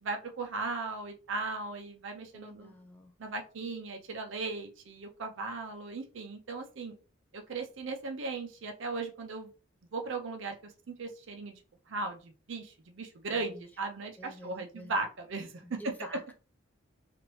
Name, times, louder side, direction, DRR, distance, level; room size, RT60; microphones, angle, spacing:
voice 1, 0.0-2.7 3.2-6.9 7.3-9.5 9.9-11.6 11.9-15.9, right 3 dB, 70° right, 0.5 m, -37 dB
voice 2, 2.3-3.1 13.5-13.7 14.2-14.9 15.6-16.3, equal, 10° left, 0.4 m, -48 dB
3.0 x 2.5 x 3.0 m
head